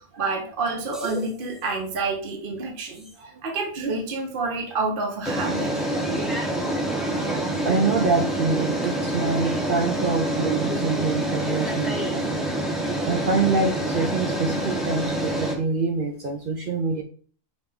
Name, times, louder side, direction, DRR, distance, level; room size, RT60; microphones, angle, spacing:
voice 1, 0.2-3.1 3.4-5.7, right 3 dB, 45° right, 2 dB, 0.9 m, -28 dB
sound 1, 0.9-1.4 3.1-3.2 5.3-15.6, right 1 dB, ahead, 0.5 m, -26 dB
voice 2, 7.6-12.3 13.0-17.0, right 4 dB, 60° right, 4 dB, 0.5 m, -25 dB
5.2 x 2.9 x 3.4 m, 0.44 s
omnidirectional pair, 1.4 m